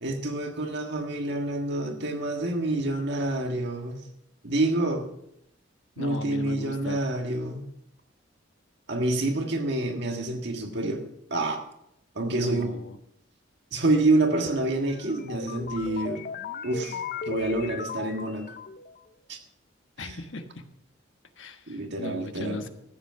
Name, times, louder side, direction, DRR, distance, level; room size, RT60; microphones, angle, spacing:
voice 1, 0.0-4.0 4.4-5.1 6.0-7.6 8.9-11.0 11.3-11.6 12.1-12.7 13.7-16.2 16.6-17.0 17.3-18.5 19.3-19.4 20.0-20.2 21.7-22.6, right 2 dB, 60° right, 4 dB, 1.6 m, -27 dB
voice 2, 6.0-7.0 12.3-13.0 20.0-20.6 21.4-22.7, left 1 dB, 75° left, 7 dB, 1.2 m, -38 dB
sound 1, 14.8-19.0, left 5 dB, 50° left, 0.6 m, -37 dB
14.0 x 8.2 x 5.7 m, 0.79 s
head